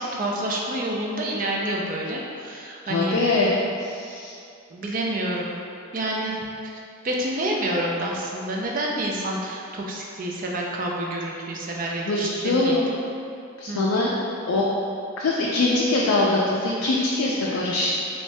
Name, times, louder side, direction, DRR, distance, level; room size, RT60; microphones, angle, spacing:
voice 1, 0.0-3.2 4.7-5.6 5.9-6.8 7.0-12.8 13.7-13.9, right 1 dB, 40° right, -2 dB, 0.4 m, -28 dB
voice 2, 2.9-3.5 3.8-4.3 12.1-12.9 13.6-14.1 14.5-14.7 15.2-17.9, left 2 dB, 75° left, -4 dB, 0.4 m, -23 dB
3.2 x 3.1 x 2.7 m, 2.5 s
head